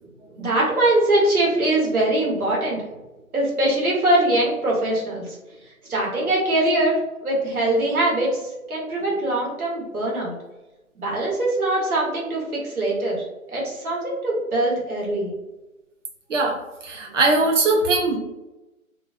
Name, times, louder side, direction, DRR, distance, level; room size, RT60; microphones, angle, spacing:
voice 1, 0.4-2.8 3.3-5.4 5.8-10.3 11.0-15.3, right 1 dB, 80° right, -4 dB, 1.2 m, -22 dB
voice 2, 16.3-18.2, right 3 dB, 60° right, 1 dB, 0.7 m, -21 dB
2.4 x 2.2 x 2.4 m, 1.0 s
figure-of-eight pair, 145°, 43 cm